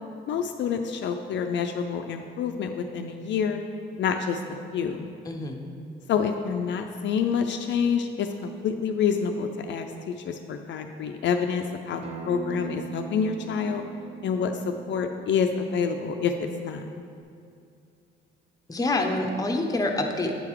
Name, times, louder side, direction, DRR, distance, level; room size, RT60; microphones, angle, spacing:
voice 1, 0.3-3.6 4.0-4.4 4.7-5.1 6.1-13.8 14.2-16.9, left 6 dB, 65° left, 5 dB, 0.4 m, -27 dB
voice 2, 5.3-5.6 18.7-20.3, left 2 dB, 20° left, 3 dB, 0.7 m, -26 dB
Acoustic guitar, 12.0-17.2, right 7 dB, 30° right, 0.6 m, -42 dB
8.3 x 3.8 x 4.6 m, 2.4 s
cardioid pair, 90°, 20 cm